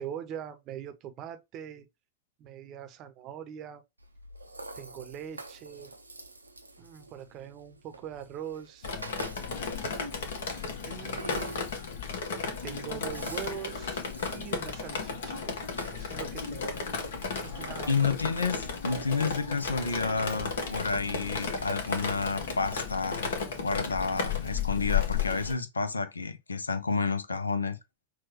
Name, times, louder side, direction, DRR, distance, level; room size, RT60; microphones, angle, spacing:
voice 1, 0.0-1.9 2.4-3.8 4.7-5.9 6.8-8.9 10.2-11.6 12.6-14.0 14.3-15.4 15.9-16.8 17.3-18.1, right 9 dB, 35° right, 0.7 m, -42 dB
Rattle (instrument), 4.0-23.0, right 2 dB, 85° right, 0.5 m, -49 dB
Drip, 8.8-25.5, left 5 dB, 60° left, 1.0 m, -34 dB
voice 2, 17.9-23.3 23.6-27.8, left 4 dB, 75° left, 0.5 m, -30 dB
6.0 x 2.2 x 3.0 m
figure-of-eight pair, 90°, 0 cm